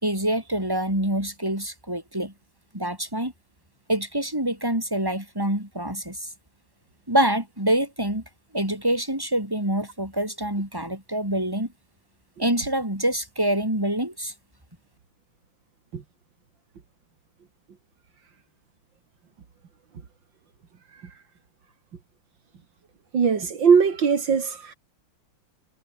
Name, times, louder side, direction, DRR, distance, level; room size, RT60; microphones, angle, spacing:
voice 1, 0.0-2.3 2.7-3.3 3.9-6.3 7.1-8.2 8.5-11.7 12.4-14.3, right 1 dB, 10° right, 6.9 m, -26 dB
voice 2, 23.1-24.7, right 6 dB, 80° right, 2.9 m, -20 dB
omnidirectional pair, 2.0 m